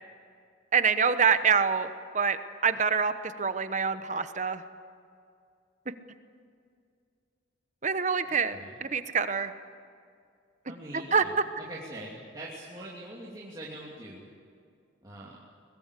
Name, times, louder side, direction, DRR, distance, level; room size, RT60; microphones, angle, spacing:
voice 1, 0.7-1.9 2.1-2.4 2.6-3.1 3.4-4.6 7.8-9.5 10.9-11.2, right 6 dB, 40° right, 10 dB, 1.0 m, -25 dB
voice 2, 8.3-8.7 10.7-14.3 15.0-15.4, right 1 dB, 20° right, -6 dB, 2.8 m, -43 dB
22.0 x 21.5 x 8.4 m, 2.3 s
head